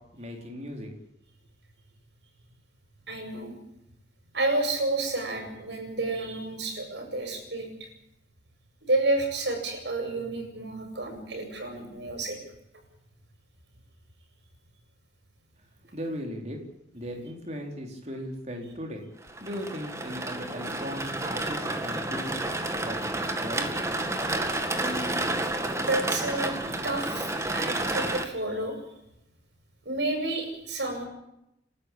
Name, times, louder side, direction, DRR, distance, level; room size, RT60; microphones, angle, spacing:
voice 1, 0.1-0.9 15.9-16.6 16.9-19.0 19.4-22.4 22.8-23.0 23.4-23.7, equal, 35° right, 2 dB, 4.3 m, -37 dB
voice 2, 3.1-3.5 4.3-7.9 8.8-12.4 24.8-25.2 25.8-26.5 26.8-28.8 29.8-31.0, right 2 dB, 70° right, 4 dB, 7.7 m, -30 dB
sound 1, 19.2-28.3, right 2 dB, 15° right, 2.0 m, -30 dB
29.5 x 13.0 x 8.7 m, 0.82 s
head